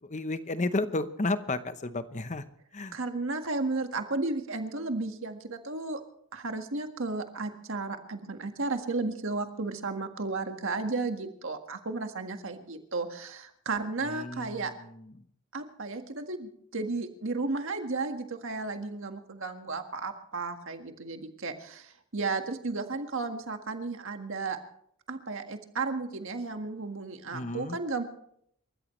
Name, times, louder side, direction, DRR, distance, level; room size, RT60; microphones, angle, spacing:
voice 1, 0.0-2.4 2.7-3.0 14.0-15.2 27.3-27.8, left 2 dB, 35° left, 11 dB, 0.9 m, -33 dB
voice 2, 2.9-6.0 6.3-14.7 15.5-24.6 25.1-28.0, right 3 dB, 60° right, 6 dB, 1.7 m, -34 dB
28.0 x 14.0 x 3.2 m, 0.69 s
head